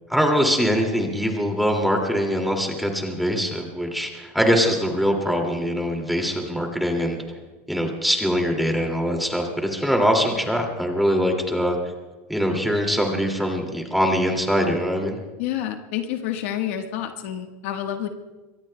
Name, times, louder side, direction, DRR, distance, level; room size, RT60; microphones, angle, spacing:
voice 1, 0.1-7.4 7.7-11.8 12.3-15.2, equal, ahead, 2 dB, 2.3 m, -23 dB
voice 2, 15.4-18.1, left 11 dB, 70° left, 5 dB, 1.3 m, -28 dB
27.0 x 23.0 x 2.2 m, 1.2 s
supercardioid pair, 155°, 7 cm